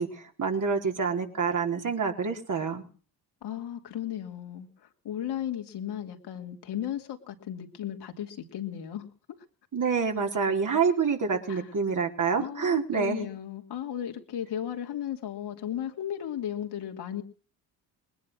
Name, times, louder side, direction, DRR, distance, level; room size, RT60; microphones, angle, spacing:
voice 1, 0.0-2.8 9.7-13.3, right 5 dB, 45° right, 3 dB, 4.3 m, -27 dB
voice 2, 3.4-9.1 11.5-11.7 12.4-17.2, left 10 dB, 65° left, 4 dB, 2.8 m, -35 dB
20.5 x 10.5 x 6.3 m, 0.42 s
supercardioid pair, 65°, 43 cm